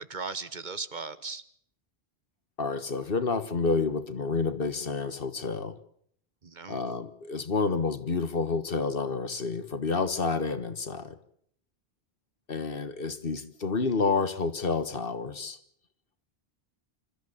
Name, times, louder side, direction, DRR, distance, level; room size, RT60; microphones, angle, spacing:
voice 1, 0.0-1.4 6.4-6.8, right 4 dB, 50° right, 14 dB, 1.2 m, -37 dB
voice 2, 2.6-5.8 6.7-11.2 12.5-15.6, left 4 dB, 60° left, 12 dB, 1.6 m, -29 dB
27.0 x 14.0 x 8.7 m, 0.65 s
omnidirectional pair, 1.1 m